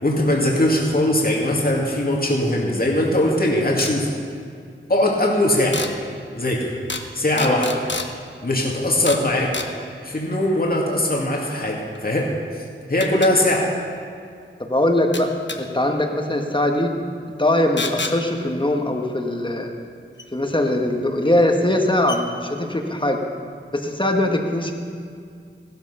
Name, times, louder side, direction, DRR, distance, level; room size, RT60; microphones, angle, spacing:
voice 1, 0.0-4.1 4.9-5.8 6.3-6.7 7.1-7.8 8.4-9.5 10.0-13.7, left 1 dB, 45° left, -2 dB, 2.2 m, -20 dB
sound 1, 3.8-3.9 5.7-5.9 6.9-7.1 7.4-8.1 9.1-9.3 9.5-9.7 11.9-12.0 13.0-13.3 15.1-15.6 17.8-18.2 20.2-20.3 21.3-21.4 21.7-21.8 22.1-22.2, left 3 dB, 60° left, 1.1 m, -29 dB
voice 2, 7.4-7.7 14.6-16.9 17.4-19.7 20.3-23.2 23.7-24.7, left 1 dB, 25° left, 2 dB, 1.6 m, -21 dB
15.5 x 13.0 x 5.7 m, 2.2 s
wide cardioid pair, 50°, 21 cm